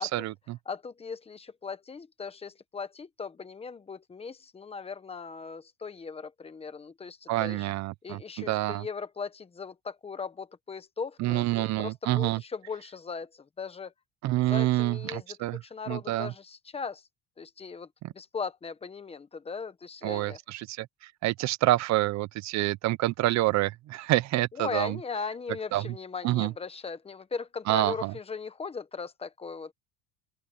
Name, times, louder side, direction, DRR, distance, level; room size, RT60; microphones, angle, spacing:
voice 1, 0.0-0.6 7.3-8.9 11.2-12.4 14.2-15.6 15.9-16.3 18.0-18.1 20.0-25.0 25.7-25.9 26.2-26.5 27.7-28.1, right 17 dB, 50° right, 0.7 m, -27 dB
voice 2, 0.7-7.7 8.0-13.9 14.4-15.4 15.6-17.1 17.4-17.9 18.1-20.4 24.5-29.7, left 5 dB, 15° left, 1.0 m, -38 dB
open air
cardioid pair, 165°, 35 cm